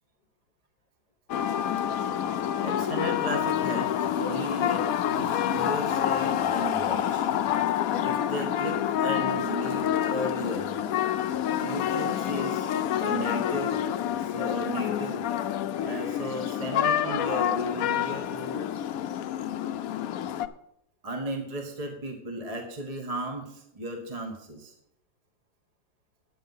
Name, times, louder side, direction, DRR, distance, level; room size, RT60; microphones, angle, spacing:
sound 1, 1.3-20.5, left 10 dB, 85° left, 0.7 m, -28 dB
voice 1, 2.6-4.8 5.1-7.3 8.0-10.7 11.6-12.7 13.0-13.8 14.2-15.3 15.8-18.7 21.0-24.7, right 1 dB, 20° right, 3 dB, 1.3 m, -35 dB
10.0 x 9.3 x 5.5 m, 0.78 s
omnidirectional pair, 2.1 m